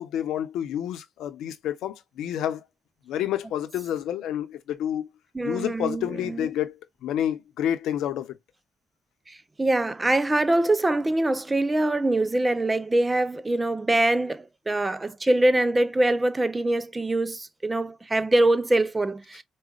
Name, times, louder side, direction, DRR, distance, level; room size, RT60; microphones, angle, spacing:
voice 1, 0.0-2.6 3.1-5.1 5.4-8.4, left 10 dB, 85° left, 0.7 m, -29 dB
voice 2, 5.3-6.5 9.3-19.4, right 2 dB, 20° right, 0.4 m, -24 dB
5.0 x 2.3 x 2.3 m
cardioid pair, 90°, 0 cm